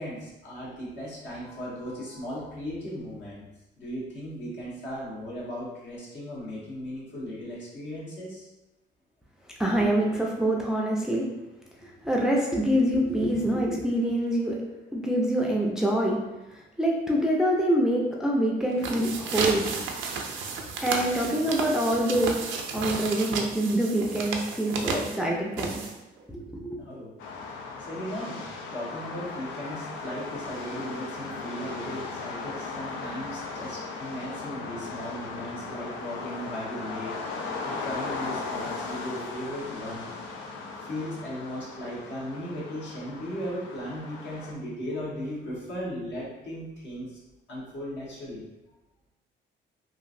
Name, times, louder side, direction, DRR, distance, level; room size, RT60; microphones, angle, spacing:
voice 1, 0.0-3.4 3.8-8.5 26.8-28.4 28.7-40.4 40.8-47.2 47.5-48.4, equal, 65° left, -7 dB, 1.3 m, -37 dB
voice 2, 9.6-11.3 11.8-14.6 14.9-16.2 16.5-19.7 20.8-22.4 22.7-25.8 26.3-26.8, right 1 dB, 5° right, -2 dB, 0.4 m, -25 dB
sound 1, 18.7-26.2, right 4 dB, 75° right, 0.5 m, -32 dB
sound 2, 27.2-44.5, left 4 dB, 85° left, 0.5 m, -37 dB
2.9 x 2.5 x 2.5 m, 1.0 s
cardioid pair, 90°, 20 cm